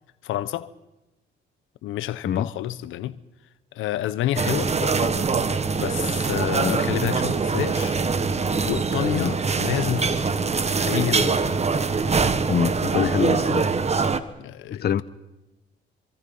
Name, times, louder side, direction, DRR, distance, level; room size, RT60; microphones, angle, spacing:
voice 1, 0.2-0.7 1.8-3.2 3.7-5.2 5.7-8.0 8.4-10.4 10.7-11.6 14.4-15.0, left 13 dB, 85° left, 1.0 m, -29 dB
sound 1, 4.4-14.2, right 4 dB, 35° right, 1.5 m, -23 dB
voice 2, 12.5-13.7 14.8-15.0, left 8 dB, 55° left, 1.0 m, -25 dB
26.0 x 24.5 x 5.6 m
cardioid pair, 90°, 20 cm